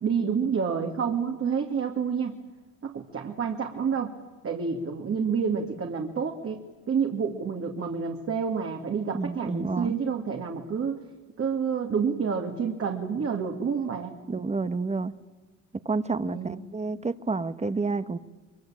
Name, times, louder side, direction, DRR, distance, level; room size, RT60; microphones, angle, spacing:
voice 1, 0.0-2.4 2.8-4.1 4.4-11.0 11.4-14.1 16.2-16.6, right 6 dB, 50° right, 2 dB, 2.4 m, -29 dB
voice 2, 9.1-9.9 14.3-15.1 15.8-18.2, right 4 dB, 20° right, 13 dB, 1.2 m, -29 dB
23.5 x 23.5 x 8.8 m, 1.3 s
cardioid pair, 90°, 30 cm